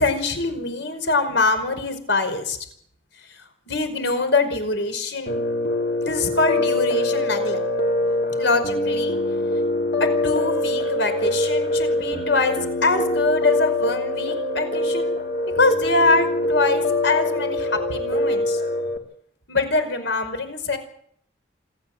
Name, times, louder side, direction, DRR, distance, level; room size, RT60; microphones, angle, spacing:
voice 1, 0.0-2.6 3.3-3.4 3.7-5.4 6.0-7.6 8.4-9.2 10.0-15.2 15.6-18.6 19.5-20.8, left 3 dB, 75° left, 9 dB, 5.3 m, -23 dB
Piano, 5.3-19.0, left 2 dB, 55° left, 2.6 m, -24 dB
27.5 x 14.0 x 8.1 m, 0.65 s
head